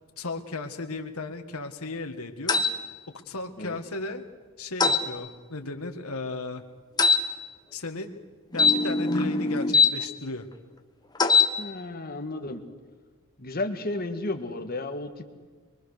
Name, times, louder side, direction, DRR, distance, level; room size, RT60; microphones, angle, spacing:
voice 1, 0.2-2.6 3.3-4.2 4.6-6.6 7.7-8.2 8.5-10.5, left 3 dB, 70° left, 5 dB, 1.8 m, -35 dB
sound 1, 2.5-2.7 4.8-5.0 7.0-7.2 8.5-9.9 11.2-11.5, left 4 dB, 20° left, 1.2 m, -21 dB
voice 2, 11.6-12.6 13.4-15.3, left 2 dB, 45° left, 6 dB, 1.7 m, -33 dB
23.5 x 22.5 x 6.6 m, 1.4 s
head